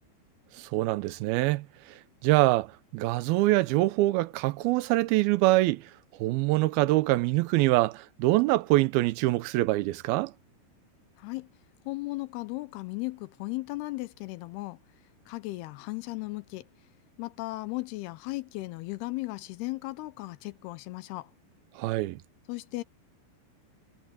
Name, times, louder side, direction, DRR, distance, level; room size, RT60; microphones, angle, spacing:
voice 1, 0.6-5.9 6.2-10.3 21.8-22.2, right 18 dB, 85° right, 2.2 m, -25 dB
voice 2, 11.2-11.5 11.9-14.8 15.3-16.7 17.2-21.3 22.5-22.8, left 21 dB, 80° left, 2.5 m, -36 dB
omnidirectional pair, 5.0 m